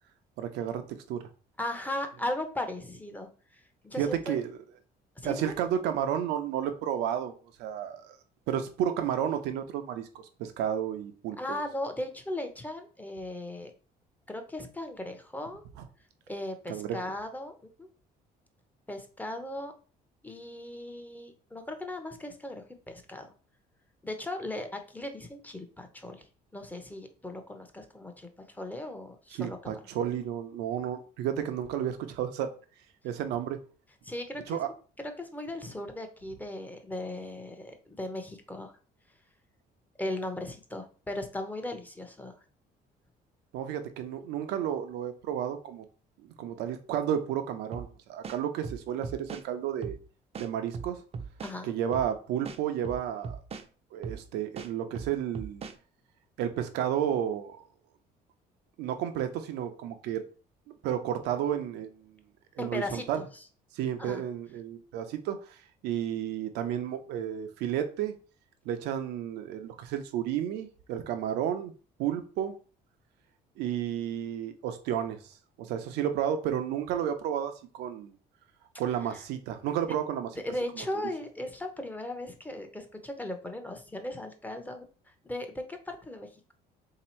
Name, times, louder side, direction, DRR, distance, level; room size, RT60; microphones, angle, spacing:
voice 1, 0.4-0.8 1.1-1.2 4.0-4.6 5.2-7.3 7.6-8.2 8.5-11.6 15.8-15.9 16.7-17.0 29.3-32.5 33.0-33.6 34.5-34.7 43.5-45.8 46.2-50.0 50.4-51.0 51.6-53.4 53.9-55.6 56.4-57.6 58.8-60.2 60.8-62.2 62.6-63.2 63.7-65.6 65.8-68.2 68.6-71.7 72.0-72.5 73.6-78.1 78.8-80.3 80.8-80.9, right 9 dB, 90° right, 0.7 m, -32 dB
voice 2, 1.6-4.4 5.2-5.5 11.4-13.7 14.3-15.6 16.3-17.9 18.9-19.7 20.2-23.3 24.0-26.3 26.5-29.8 34.0-34.6 35.2-38.8 40.0-42.3 51.4-51.7 62.6-63.4 64.0-64.2 79.9-80.0 80.4-86.5, left 1 dB, 10° left, 0.8 m, -37 dB
sound 1, 47.7-47.9 48.2-49.4 49.8-50.0 50.3-51.6 51.9-52.1 52.4-53.7 54.0-54.2 54.6-55.8, right 5 dB, 35° right, 0.5 m, -39 dB
3.4 x 2.9 x 4.3 m
cardioid pair, 110°, 17 cm